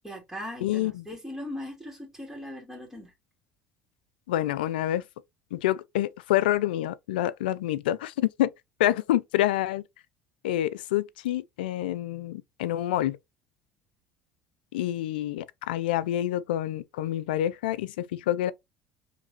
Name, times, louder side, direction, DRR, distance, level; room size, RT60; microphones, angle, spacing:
voice 1, 0.0-3.1, left 1 dB, ahead, 2.4 m, -39 dB
voice 2, 0.6-1.0 4.3-5.0 5.5-8.5 8.8-9.8 10.4-13.2 14.7-18.5, left 13 dB, 85° left, 0.3 m, -27 dB
4.7 x 3.2 x 2.8 m
hypercardioid pair, 80°, 5 cm